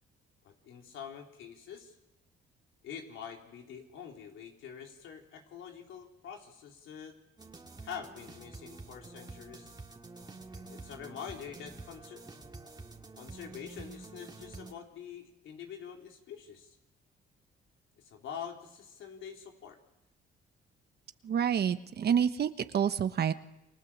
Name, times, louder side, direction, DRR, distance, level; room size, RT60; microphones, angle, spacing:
voice 1, 0.4-2.0 2.8-7.2 7.8-9.7 10.5-12.3 13.2-16.8 18.0-19.8, left 7 dB, 80° left, 2 dB, 4.0 m, -45 dB
sound 1, 7.4-14.7, right 3 dB, 20° right, 2.3 m, -48 dB
voice 2, 21.2-23.3, right 8 dB, 55° right, 10 dB, 1.1 m, -28 dB
29.5 x 23.5 x 7.4 m, 0.89 s
cardioid pair, 90°, 20 cm